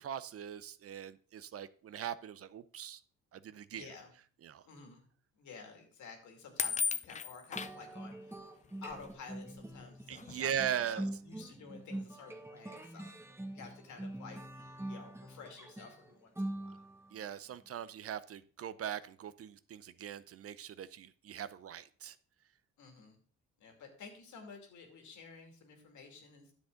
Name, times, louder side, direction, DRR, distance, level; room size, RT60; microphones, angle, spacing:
voice 1, 0.0-3.0 3.3-3.9 4.4-4.6 10.1-11.1 17.1-22.2, right 9 dB, 50° right, 16 dB, 0.6 m, -40 dB
voice 2, 3.7-4.1 4.6-5.0 5.4-8.4 8.8-10.5 10.8-13.2 13.5-16.8 22.8-23.2 23.6-26.5, left 4 dB, 75° left, 4 dB, 2.5 m, -52 dB
sound 1, 6.6-7.8 8.9-9.1 9.8-9.9 10.1-10.5, left 6 dB, 25° left, 0.4 m, -35 dB
sound 2, 7.6-17.2, right 1 dB, 10° right, 1.2 m, -44 dB
10.0 x 7.0 x 3.8 m, 0.43 s
cardioid pair, 90°, 30 cm